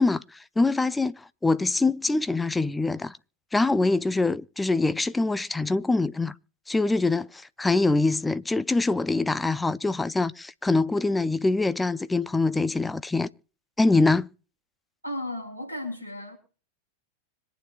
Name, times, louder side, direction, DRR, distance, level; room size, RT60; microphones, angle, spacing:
voice 1, 0.0-3.2 3.5-6.3 6.7-13.3 13.8-14.3, left 3 dB, 10° left, 0.5 m, -24 dB
voice 2, 15.0-16.4, left 1 dB, 90° right, 4.5 m, -34 dB
25.5 x 9.2 x 2.4 m
figure-of-eight pair, 90°, 0 cm